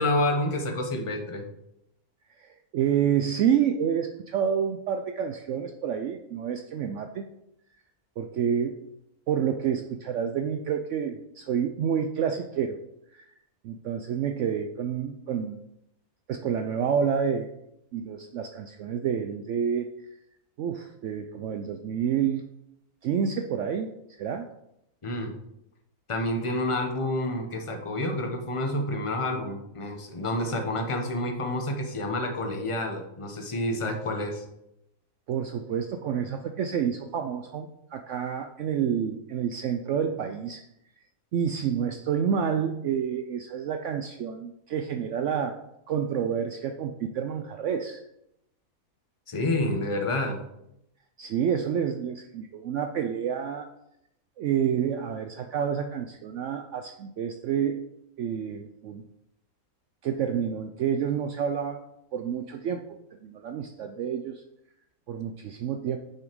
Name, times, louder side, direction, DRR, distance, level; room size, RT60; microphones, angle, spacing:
voice 1, 0.0-1.4 25.0-25.3 26.1-34.4 49.3-50.4, left 1 dB, 25° left, 3 dB, 0.9 m, -29 dB
voice 2, 2.4-7.3 8.2-8.8 9.3-12.8 13.1-13.2 13.6-15.6 16.3-17.5 17.9-19.9 20.6-22.5 23.0-23.9 24.2-24.5 35.3-40.6 41.3-45.6 45.9-48.0 51.2-53.7 54.4-57.9 58.2-59.0 60.0-61.8 62.1-62.8 63.2-64.4 65.1-66.0, right 8 dB, 65° right, 6 dB, 0.8 m, -28 dB
6.5 x 5.6 x 5.2 m, 0.82 s
omnidirectional pair, 1.5 m